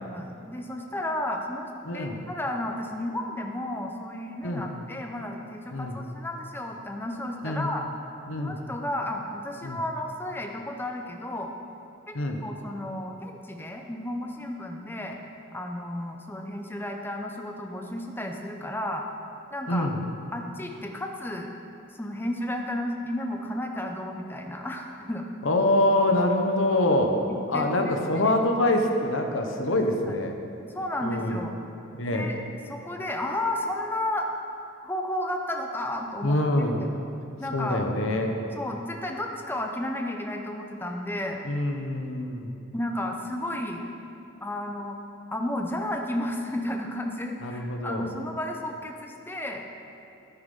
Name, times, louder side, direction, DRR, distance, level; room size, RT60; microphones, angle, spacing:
voice 1, 0.0-1.7 1.9-7.8 8.4-11.5 12.1-12.2 12.4-15.2 15.5-19.0 19.5-19.9 20.3-21.5 21.9-25.3 26.9-28.3 30.7-31.5 32.1-32.4 32.7-34.3 34.8-36.4 37.4-37.8 38.6-41.4 42.7-43.9 44.4-45.0 45.3-49.6, left 1 dB, 10° left, 3 dB, 0.7 m, -33 dB
voice 2, 1.8-2.2 4.4-4.7 5.7-6.0 7.4-7.7 8.3-8.6 9.6-9.8 12.1-12.4 19.7-20.0 25.4-27.2 27.5-30.4 31.0-31.4 31.9-32.3 36.2-36.8 37.5-38.4 41.4-42.5 47.4-48.1, left 1 dB, 75° left, 4 dB, 1.0 m, -25 dB
9.6 x 9.4 x 5.4 m, 2.8 s
head